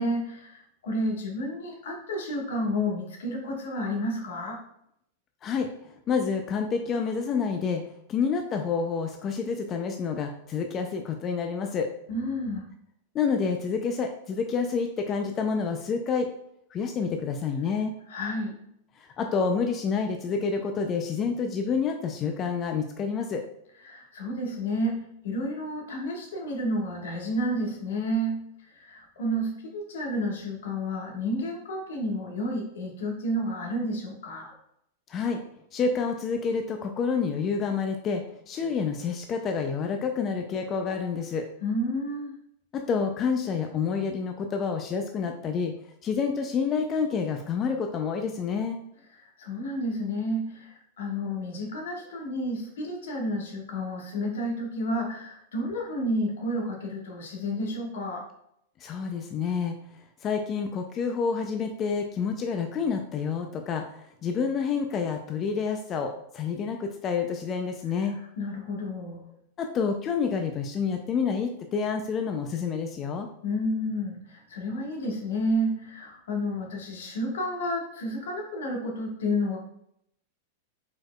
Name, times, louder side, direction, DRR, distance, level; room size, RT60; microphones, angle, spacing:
voice 1, 0.0-4.6 12.1-12.6 18.1-18.5 23.8-34.5 41.6-42.4 49.2-58.2 68.1-69.2 73.4-79.6, equal, 80° left, 0 dB, 1.4 m, -31 dB
voice 2, 5.4-7.8 8.1-11.9 13.1-16.3 16.7-17.9 19.0-23.4 35.1-35.4 35.7-41.5 42.7-45.7 46.0-48.8 58.8-59.8 60.2-68.2 69.6-73.3, left 5 dB, 30° left, 4 dB, 0.4 m, -28 dB
4.6 x 4.4 x 2.3 m, 0.73 s
hypercardioid pair, 120°, 0 cm